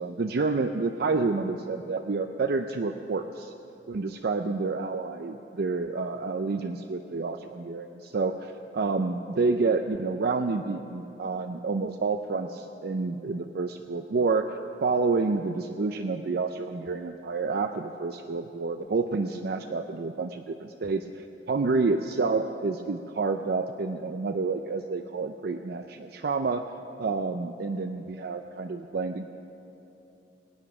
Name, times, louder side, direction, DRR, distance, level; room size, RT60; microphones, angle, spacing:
voice 1, 0.0-3.5 3.9-14.5 14.8-26.7 27.0-29.4, right 4 dB, 60° right, 6 dB, 0.5 m, -29 dB
21.5 x 9.0 x 6.0 m, 3.0 s
head